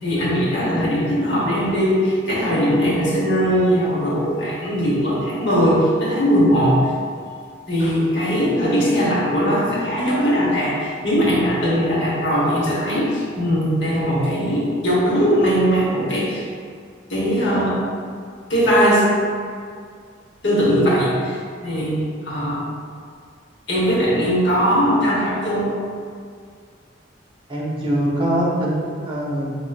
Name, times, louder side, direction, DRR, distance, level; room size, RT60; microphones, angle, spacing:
voice 1, 0.0-6.9 7.7-16.5 17.1-17.8 18.5-19.1 20.4-22.0 22.2-22.7 23.7-25.7, equal, 75° left, -6 dB, 1.1 m, -19 dB
voice 2, 27.5-29.5, right 1 dB, 30° right, -5 dB, 0.7 m, -23 dB
4.8 x 3.0 x 2.3 m, 2.2 s
head